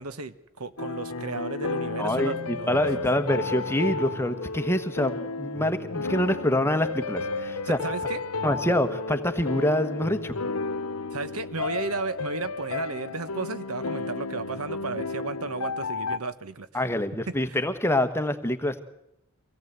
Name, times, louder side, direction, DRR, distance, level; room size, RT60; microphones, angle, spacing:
voice 1, 0.0-2.9 7.7-8.2 11.1-16.8 17.3-17.6, right 3 dB, 85° right, 12 dB, 1.2 m, -34 dB
sound 1, 0.8-16.2, left 4 dB, 90° left, 0.9 m, -33 dB
voice 2, 2.0-7.8 8.4-10.4 16.7-18.8, left 1 dB, 10° left, 9 dB, 1.2 m, -26 dB
25.0 x 17.5 x 8.2 m, 0.83 s
head